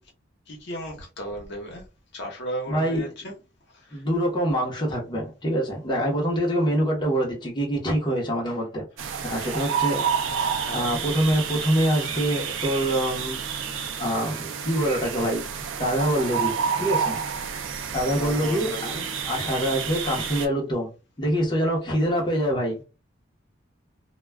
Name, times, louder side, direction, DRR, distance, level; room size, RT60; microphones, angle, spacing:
voice 1, 0.5-1.8 2.1-3.3 3.9-4.0 9.3-9.5 10.0-10.9 17.8-19.1, equal, 65° left, 0.9 m, -36 dB
voice 2, 2.7-3.1 3.9-10.0 10.4-13.4 13.7-15.4 15.8-17.2 17.9-18.9 19.3-20.9 21.2-22.8, equal, 25° left, 0.8 m, -25 dB
sound 1, 9.0-20.5, right 7 dB, 90° right, 0.5 m, -29 dB
2.3 x 2.2 x 3.3 m
head